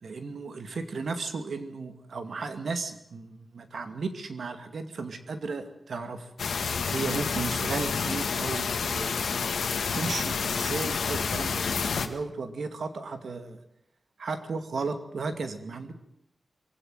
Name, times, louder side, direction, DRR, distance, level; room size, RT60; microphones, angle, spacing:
voice 1, 0.0-6.3 6.9-9.2 9.9-13.6 14.2-15.9, right 4 dB, 70° right, 9 dB, 2.4 m, -35 dB
sound 1, 6.4-12.1, left 5 dB, 90° left, 1.8 m, -29 dB
23.0 x 16.5 x 9.4 m, 0.77 s
wide cardioid pair, 150°, 0 cm